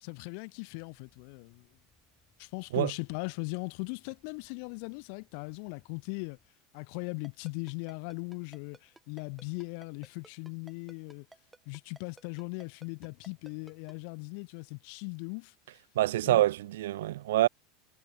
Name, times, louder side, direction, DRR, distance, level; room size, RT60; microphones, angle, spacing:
voice 1, 0.0-1.7 2.4-6.4 6.7-11.3 11.7-15.5 16.2-16.5, left 40 dB or more, 65° left, 0.6 m, -39 dB
sound 1, 0.7-6.5, left 3 dB, 15° left, 6.0 m, -71 dB
Ringtone, 7.2-13.9, right 2 dB, 10° right, 5.7 m, -54 dB
voice 2, 16.0-17.5, right 15 dB, 85° right, 0.3 m, -26 dB
supercardioid pair, 120°, 0 cm